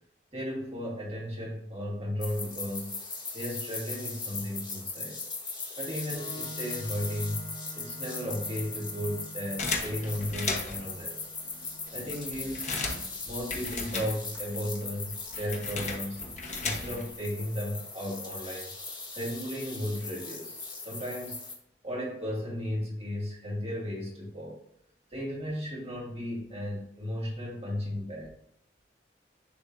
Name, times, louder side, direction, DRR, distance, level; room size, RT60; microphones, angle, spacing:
voice 1, 0.3-2.9 3.3-5.2 5.8-11.3 11.9-12.7 13.2-16.3 16.6-18.7 19.1-21.4 21.8-24.6 25.1-28.3, equal, 35° right, -5 dB, 2.4 m, -35 dB
sound 1, 2.2-21.5, left 4 dB, 25° left, 1.4 m, -39 dB
Organ, 6.1-13.6, right 1 dB, 70° left, 1.6 m, -48 dB
sound 2, 9.6-10.9 11.6-11.7 11.9-14.6 14.8-17.2, left 3 dB, 40° left, 1.0 m, -35 dB
10.5 x 3.5 x 2.7 m, 0.72 s
head